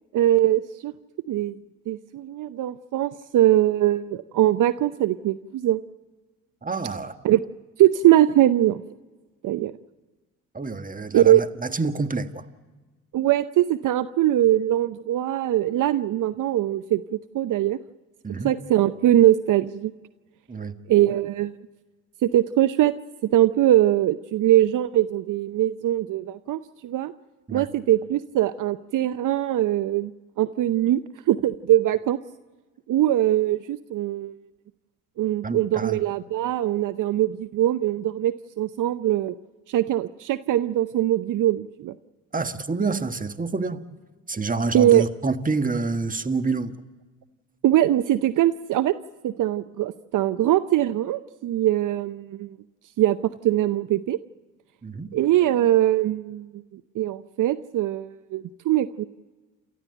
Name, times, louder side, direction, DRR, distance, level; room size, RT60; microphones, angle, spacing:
voice 1, 0.1-0.9 1.3-1.6 1.9-5.8 7.2-7.4 7.8-8.8 9.4-9.7 11.1-11.4 13.1-17.8 18.4-19.9 20.9-21.6 22.2-22.9 23.2-27.1 27.5-30.1 30.4-31.0 31.3-32.2 32.9-34.4 35.2-39.4 39.7-41.9 44.7-45.0 47.6-48.9 49.2-52.6 53.0-53.2 53.4-54.2 55.1-59.0, right 13 dB, 60° right, 0.7 m, -22 dB
voice 2, 6.6-7.2 10.5-12.4 18.2-18.6 20.5-20.7 27.5-27.7 35.4-36.0 42.3-43.8 44.3-46.7 54.8-55.1, right 3 dB, 25° right, 1.6 m, -28 dB
28.5 x 14.5 x 7.8 m
supercardioid pair, 60°, 35 cm